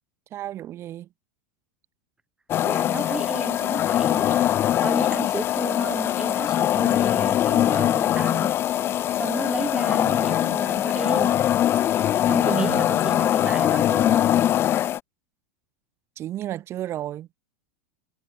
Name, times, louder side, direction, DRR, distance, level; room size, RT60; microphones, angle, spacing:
voice 1, 0.3-1.1 12.4-12.9 16.2-17.4, right 13 dB, 35° right, 4.8 m, -32 dB
sound 1, 2.5-15.0, left 11 dB, 35° left, 1.1 m, -22 dB
voice 2, 2.6-8.5 8.9-11.3 12.1-14.3, right 3 dB, 10° right, 2.6 m, -33 dB
supercardioid pair, 120°, 7 cm